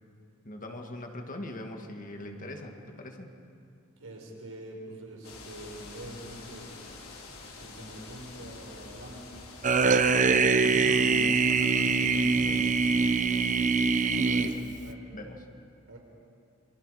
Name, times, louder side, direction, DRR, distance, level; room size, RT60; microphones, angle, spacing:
voice 1, 0.4-3.3 10.6-12.8 14.6-14.8 15.1-15.5, left 1 dB, 40° left, 3 dB, 1.9 m, -41 dB
voice 2, 4.0-6.7 7.6-9.3 14.0-14.5 14.8-15.0 15.9-16.0, right 1 dB, 75° right, 0 dB, 5.2 m, -45 dB
sound 1, 5.2-14.5, left 3 dB, 85° left, 4.2 m, -48 dB
sound 2, 9.6-14.9, right 4 dB, 35° right, 0.8 m, -24 dB
28.5 x 25.0 x 4.9 m, 2.4 s
head